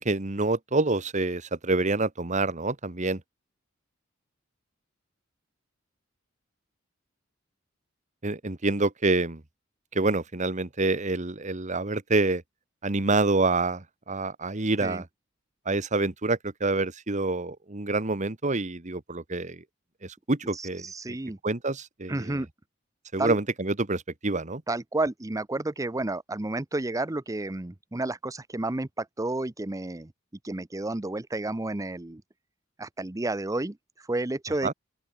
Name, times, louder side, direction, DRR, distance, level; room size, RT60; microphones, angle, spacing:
voice 1, 0.0-3.2 8.2-9.4 9.9-12.4 12.8-15.0 15.6-19.6 20.0-21.2 21.4-22.4 23.1-24.6 34.6-34.7, right 2 dB, 35° right, 1.5 m, -27 dB
voice 2, 20.5-21.4 22.1-22.5 23.2-23.4 24.7-30.1 30.4-32.2 32.8-34.7, right 2 dB, 15° right, 0.6 m, -31 dB
open air
head